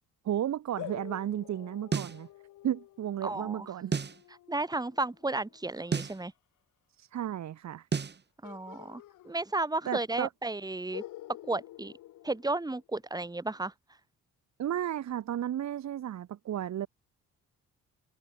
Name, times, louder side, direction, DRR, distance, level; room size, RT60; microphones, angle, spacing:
voice 1, 0.2-2.3 2.6-3.9 7.0-7.9 9.9-10.3 14.6-16.9, right 11 dB, 65° right, 2.3 m, -33 dB
sound 1, 0.8-6.2 8.4-9.9 10.2-10.3 10.9-13.1, left 15 dB, 85° left, 4.5 m, -49 dB
sound 2, 1.9-2.2 3.9-4.2 5.9-6.2 7.9-8.2, right 5 dB, 35° right, 2.6 m, -31 dB
voice 2, 3.2-3.7 4.5-6.3 8.4-11.0 11.5-11.9 12.2-13.7, right 2 dB, 15° right, 2.9 m, -33 dB
cardioid pair, 90°, 30 cm